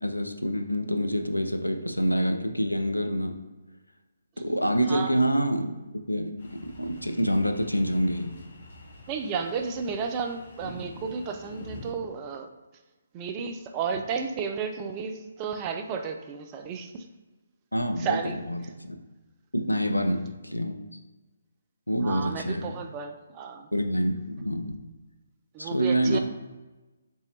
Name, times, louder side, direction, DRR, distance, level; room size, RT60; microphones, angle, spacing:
voice 1, 0.0-3.3 4.4-5.8 6.1-8.3 17.7-19.0 19.5-20.8 21.9-22.9 23.7-24.7 25.6-26.2, equal, 85° left, 5 dB, 0.5 m, -27 dB
sound 1, 6.4-11.9, left 1 dB, 45° left, 1.1 m, -46 dB
voice 2, 9.1-12.5 13.1-17.0 18.0-18.4 19.9-20.0 22.0-23.7 25.5-26.2, right 6 dB, 20° right, 5 dB, 0.3 m, -32 dB
4.0 x 2.6 x 3.2 m, 1.2 s
figure-of-eight pair, 140°, 0 cm